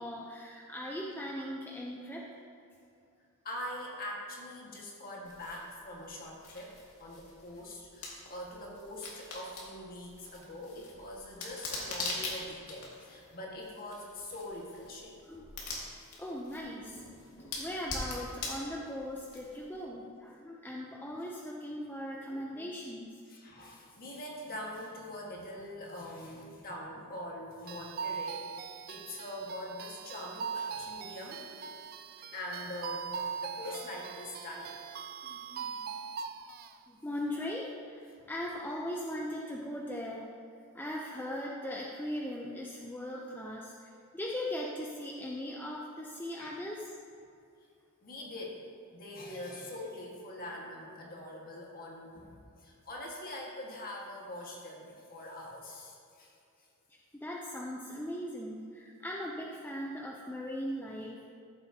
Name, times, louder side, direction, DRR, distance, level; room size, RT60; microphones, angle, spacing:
voice 1, 0.0-2.3 15.2-15.5 16.2-17.0 17.6-23.2 35.2-35.8 36.9-40.3 40.7-46.9 56.9-61.3, left 1 dB, 10° left, -2 dB, 0.5 m, -39 dB
voice 2, 3.4-15.2 23.3-31.4 32.3-34.7 46.4-46.6 48.0-48.6 48.9-56.3, left 1 dB, 40° left, -2 dB, 1.7 m, -43 dB
sound 1, 5.2-19.8, left 2 dB, 85° left, 2.0 m, -43 dB
sound 2, 27.7-36.7, right 6 dB, 40° right, 0.3 m, -41 dB
14.0 x 7.7 x 2.8 m, 2.5 s
head